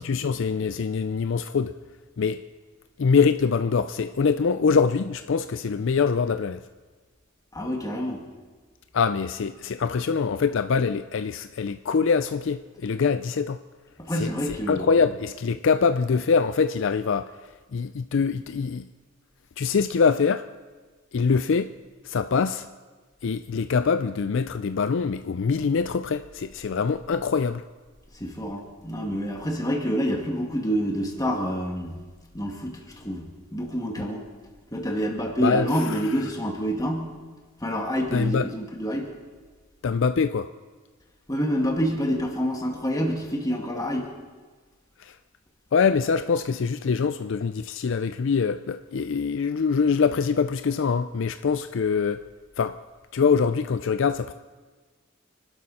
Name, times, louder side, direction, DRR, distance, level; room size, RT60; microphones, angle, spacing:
voice 1, 0.0-1.7 2.2-2.4 3.0-6.6 8.9-13.6 14.2-17.3 17.7-18.9 19.6-20.5 21.1-21.7 22.0-22.7 23.2-27.6 35.4-36.0 38.1-38.5 39.8-40.5 45.0-45.2 45.7-52.2 52.6-52.8 53.1-54.3, left 5 dB, 60° left, 0.4 m, -24 dB
voice 2, 7.5-8.2 14.0-14.9 28.1-32.0 32.3-34.3 34.7-37.1 37.6-39.1 41.3-44.1, equal, 15° left, 2.2 m, -27 dB
26.5 x 12.5 x 4.2 m
head